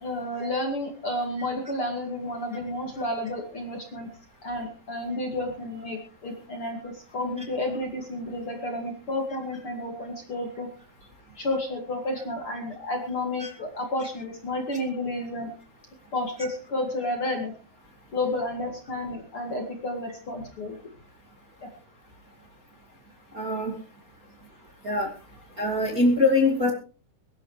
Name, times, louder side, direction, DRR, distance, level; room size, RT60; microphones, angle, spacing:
voice 1, 0.0-4.1 4.4-10.7 11.4-15.5 16.1-17.5 18.1-20.8 21.6-21.7, left 1 dB, 40° left, 2 dB, 2.6 m, -31 dB
voice 2, 23.3-23.7 24.8-25.1 25.6-26.7, left 2 dB, 25° right, 0 dB, 2.2 m, -22 dB
23.0 x 12.5 x 3.3 m, 0.35 s
omnidirectional pair, 4.5 m